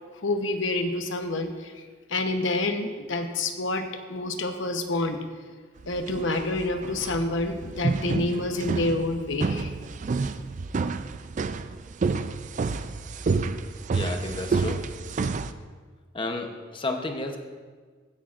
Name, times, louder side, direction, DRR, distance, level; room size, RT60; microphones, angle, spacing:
voice 1, 0.1-1.8 2.1-5.2 5.9-9.7, left 2 dB, 70° left, 6 dB, 1.0 m, -28 dB
sound 1, 5.8-15.5, right 4 dB, 40° right, 0.4 m, -29 dB
voice 2, 13.9-14.8 16.1-17.4, left 2 dB, 25° left, 4 dB, 0.9 m, -32 dB
16.0 x 10.5 x 2.5 m, 1.5 s
head